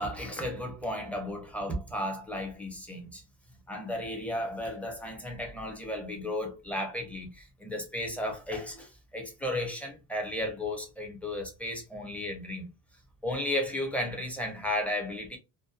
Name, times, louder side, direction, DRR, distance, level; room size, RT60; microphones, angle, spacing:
voice 1, 0.0-3.2 3.7-12.7 13.2-15.4, left 1 dB, 5° left, 0.5 m, -34 dB
2.6 x 2.0 x 2.3 m
cardioid pair, 150°, 38 cm